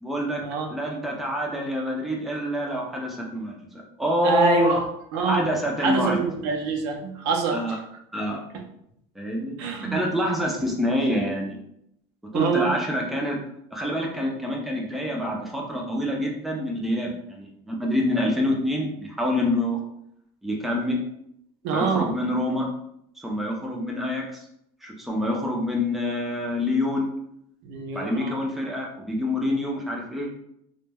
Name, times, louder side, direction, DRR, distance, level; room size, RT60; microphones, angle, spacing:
voice 1, 0.0-0.4 0.7-4.8 5.3-6.2 7.5-7.8 8.1-8.4 9.2-9.6 9.8-11.6 12.3-13.4 13.7-19.8 20.4-21.0 21.7-22.7 23.2-24.4 24.8-27.1 27.9-30.3, left 1 dB, ahead, -1 dB, 0.4 m, -26 dB
voice 2, 4.2-4.8 5.1-5.4 5.8-7.6 9.6-10.0 12.3-12.8 21.6-22.1 27.6-28.3, right 4 dB, 70° right, 3 dB, 0.5 m, -25 dB
2.2 x 2.1 x 3.3 m, 0.75 s
cardioid pair, 165°, 12 cm